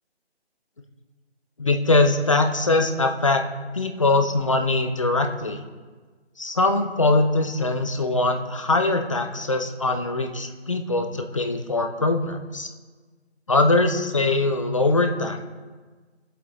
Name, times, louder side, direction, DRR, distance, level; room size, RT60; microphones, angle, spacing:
voice 1, 1.6-3.4 3.7-5.6 6.4-12.7 13.5-15.4, left 2 dB, 30° left, 5 dB, 0.8 m, -22 dB
20.0 x 7.9 x 3.9 m, 1.4 s
figure-of-eight pair, 165°, 33 cm